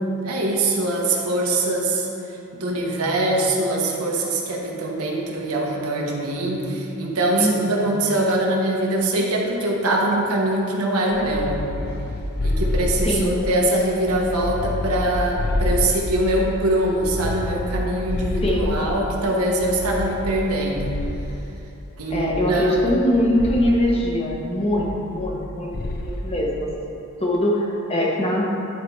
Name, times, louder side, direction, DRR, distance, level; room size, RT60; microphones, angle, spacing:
voice 1, 0.0-2.1 2.5-11.5 12.4-20.9 22.0-22.9, right 1 dB, 90° right, -2 dB, 1.2 m, -23 dB
voice 2, 7.4-8.0 13.0-13.3 18.4-18.8 22.1-28.4, left 1 dB, 25° left, -3 dB, 0.9 m, -23 dB
sound 1, 11.1-13.6 14.0-16.5 16.9-19.1 19.6-21.5 22.1-23.1 23.4-23.9 24.7-25.5 25.7-26.2, left 1 dB, 45° left, 0.5 m, -28 dB
11.0 x 4.2 x 4.6 m, 2.9 s
head